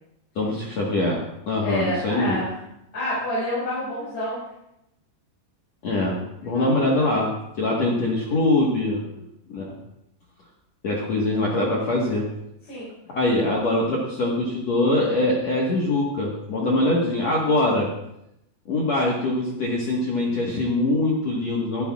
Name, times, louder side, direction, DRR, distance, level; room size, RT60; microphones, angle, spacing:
voice 1, 0.3-2.4 5.8-6.2 6.4-7.3 7.6-9.0 9.5-9.7 10.8-12.3 13.1-17.9 18.7-21.8, left 2 dB, 60° left, -3 dB, 1.8 m, -23 dB
voice 2, 1.6-2.6 2.9-4.4 6.5-7.1 9.1-9.3 12.7-12.9 16.6-16.9, left 1 dB, 45° left, -9 dB, 6.6 m, -29 dB
22.0 x 10.0 x 2.4 m, 0.83 s
omnidirectional pair, 5.3 m